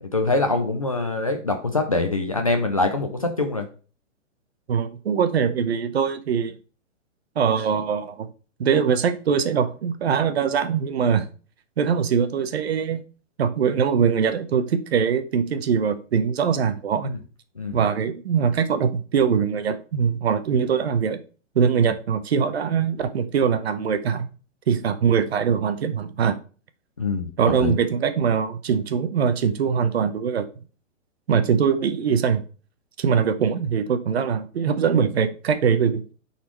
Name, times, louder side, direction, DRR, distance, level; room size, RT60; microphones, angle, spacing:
voice 1, 0.0-3.7 17.1-17.2 17.6-17.8 21.8-21.9 27.0-27.3 27.6-27.8, left 2 dB, 30° left, 5 dB, 0.4 m, -24 dB
voice 2, 4.7-6.5 7.4-8.3 8.6-11.3 11.8-13.0 13.4-17.1 17.7-21.2 21.5-24.3 24.7-26.4 27.4-30.5 31.3-32.4 33.0-36.0, right 7 dB, 55° right, 11 dB, 0.8 m, -22 dB
9.3 x 4.2 x 3.0 m, 0.37 s
hypercardioid pair, 180°, 39 cm